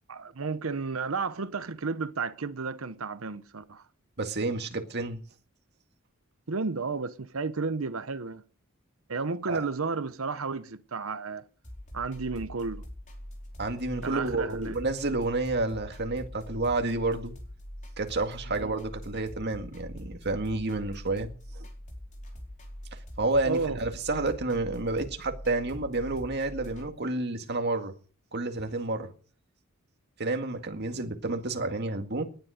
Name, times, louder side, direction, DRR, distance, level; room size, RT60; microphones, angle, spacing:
voice 1, 0.1-3.8 6.5-8.4 9.1-11.4 11.9-12.8 14.0-14.8 18.5-18.8 23.4-23.8, right 4 dB, 75° right, 0.8 m, -32 dB
voice 2, 4.2-5.2 9.5-9.6 13.6-17.3 18.0-21.7 23.2-27.9 28.3-29.1 30.2-32.2, right 2 dB, 55° right, 2.0 m, -30 dB
sound 1, 11.6-26.9, equal, 40° left, 4.7 m, -43 dB
19.0 x 10.5 x 5.0 m
head